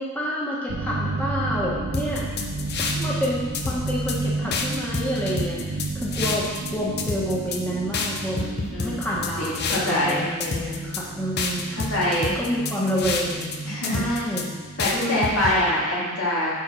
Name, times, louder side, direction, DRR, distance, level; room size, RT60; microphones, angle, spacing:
voice 1, 0.0-2.3 2.8-8.5 8.8-11.9 12.3-13.6 13.9-14.5 14.9-15.5, equal, 10° left, -6 dB, 1.4 m, -28 dB
sound 1, 0.7-15.9, right 3 dB, 45° right, 0.5 m, -32 dB
sound 2, 1.9-3.3 3.5-4.2 4.5-6.7 7.0-7.6 7.9-10.1 10.4-11.0 11.4-13.6 13.8-14.4 14.8-15.5, left 4 dB, 50° left, 0.8 m, -28 dB
voice 2, 8.3-9.0 9.4-10.2 11.7-12.4 13.6-14.2 14.8-16.5, left 1 dB, 70° left, -7 dB, 3.0 m, -25 dB
9.4 x 4.4 x 6.2 m, 1.4 s
head